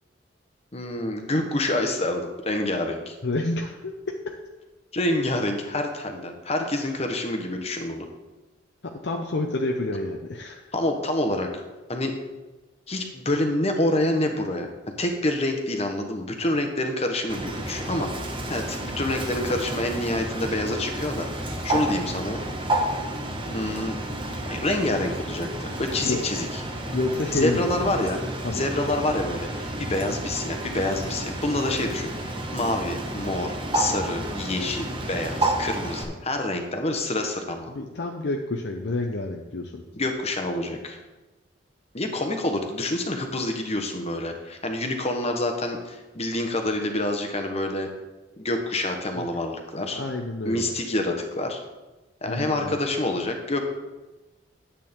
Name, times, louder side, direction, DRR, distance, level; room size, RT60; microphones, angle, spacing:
voice 1, 0.7-3.1 4.9-8.1 10.7-11.5 11.9-12.1 12.9-14.7 15.0-21.3 21.6-22.4 23.5-23.9 24.5-26.5 27.3-28.2 28.5-37.7 39.9-41.0 41.9-47.9 48.4-50.0 50.4-51.6 52.2-53.6, left 1 dB, 35° left, 4 dB, 1.2 m, -27 dB
voice 2, 3.2-4.4 6.8-6.9 8.8-10.7 21.7-22.0 26.0-26.2 26.9-27.9 28.4-28.7 30.0-30.1 37.7-39.8 49.1-49.3 50.0-50.7 52.3-52.8, left 2 dB, 60° left, 2 dB, 0.7 m, -29 dB
Bird, 17.3-36.0, right 1 dB, 25° right, 1.2 m, -31 dB
10.5 x 8.4 x 3.6 m, 1.1 s
head